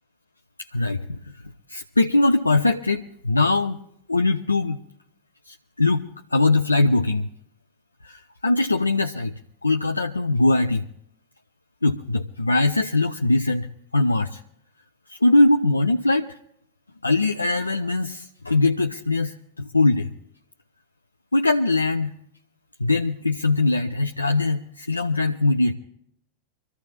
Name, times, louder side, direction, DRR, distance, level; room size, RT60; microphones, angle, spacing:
voice 1, 0.6-3.8 4.1-4.8 5.5-7.3 8.0-9.3 9.6-10.9 11.8-13.7 13.9-14.4 15.1-16.4 17.0-20.1 21.3-22.1 22.8-25.7, left 2 dB, 80° left, 8 dB, 0.5 m, -21 dB
24.5 x 14.5 x 2.9 m, 0.75 s
figure-of-eight pair, 90°, 0 cm